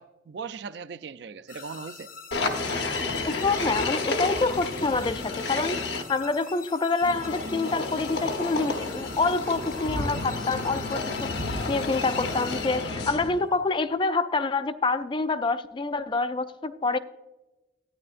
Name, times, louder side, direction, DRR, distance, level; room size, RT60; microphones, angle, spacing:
voice 1, 0.0-2.1, right 5 dB, 65° right, 0.4 m, -39 dB
sound 1, 1.5-13.3, left 5 dB, 45° left, 0.7 m, -45 dB
sound 2, 2.3-6.0 7.0-13.4, left 3 dB, 70° left, 1.0 m, -31 dB
voice 2, 3.3-17.0, left 3 dB, 25° left, 0.3 m, -27 dB
12.0 x 9.6 x 2.5 m
head